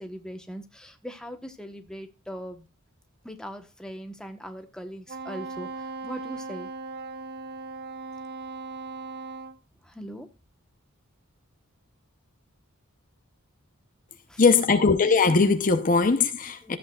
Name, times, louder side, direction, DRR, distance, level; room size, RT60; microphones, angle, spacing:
voice 1, 0.0-2.7 3.2-6.7 9.8-10.3 14.3-14.8 16.6-16.8, equal, 5° left, 1.1 m, -40 dB
Wind instrument woodwind instrument, 5.1-9.6, right 3 dB, 50° right, 0.6 m, -38 dB
voice 2, 14.4-16.8, left 4 dB, 40° left, 0.8 m, -20 dB
13.5 x 8.3 x 2.4 m
head